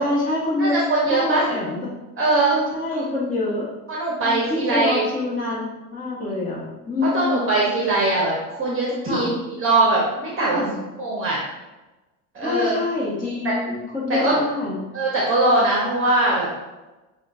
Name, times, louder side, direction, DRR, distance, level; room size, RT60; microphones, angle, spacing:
voice 1, 0.0-0.8 1.0-1.9 2.7-3.6 4.2-7.5 9.1-9.3 10.5-10.7 12.4-14.8, left 2 dB, 20° left, -7 dB, 1.4 m, -26 dB
voice 2, 0.6-1.4 2.2-2.6 3.9-5.0 7.0-10.6 11.0-11.4 12.3-12.8 13.4-13.5 14.2-14.3 14.9-16.5, right 2 dB, 30° right, -4 dB, 0.9 m, -21 dB
5.9 x 2.4 x 2.6 m, 1.1 s
supercardioid pair, 100°, 40 cm